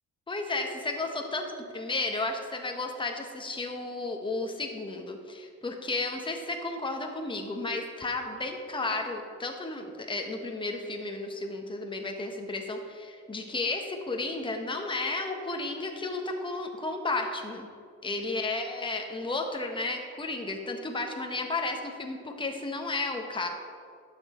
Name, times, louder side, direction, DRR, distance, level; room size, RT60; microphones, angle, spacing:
voice 1, 0.3-17.7 18.0-23.5, left 3 dB, 15° left, 3 dB, 1.2 m, -33 dB
11.5 x 7.2 x 4.3 m, 2.2 s
cardioid pair, 90°, 30 cm